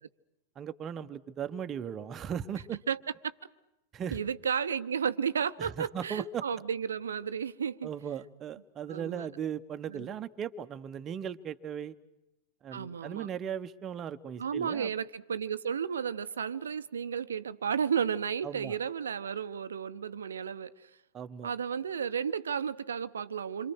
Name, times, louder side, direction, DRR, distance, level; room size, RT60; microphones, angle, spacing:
voice 1, 0.5-2.8 3.9-4.2 5.6-6.4 7.8-12.0 12.6-14.9 18.4-18.8 21.1-21.5, right 8 dB, 25° right, 1.1 m, -37 dB
voice 2, 4.1-7.9 8.9-9.3 9.9-10.1 12.7-13.3 14.4-20.9 21.4-23.7, right 7 dB, 70° right, 0.9 m, -33 dB
27.5 x 26.5 x 6.4 m
figure-of-eight pair, 90°, 0 cm